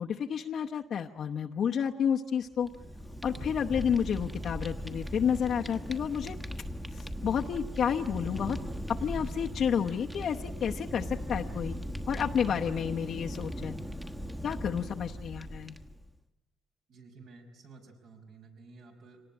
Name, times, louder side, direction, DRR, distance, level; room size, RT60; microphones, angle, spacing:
voice 1, 0.0-2.7 3.2-6.4 6.9-8.6 8.9-11.8 12.1-13.8 14.4-15.7, left 8 dB, 55° left, 1 dB, 0.9 m, -30 dB
Fire, 2.5-16.1, equal, 5° right, 1.3 m, -39 dB
voice 2, 3.3-3.6 12.5-12.8 16.9-19.2, right 4 dB, 65° right, 4 dB, 5.4 m, -51 dB
25.5 x 19.0 x 9.9 m, 1.1 s
cardioid pair, 120°, 0 cm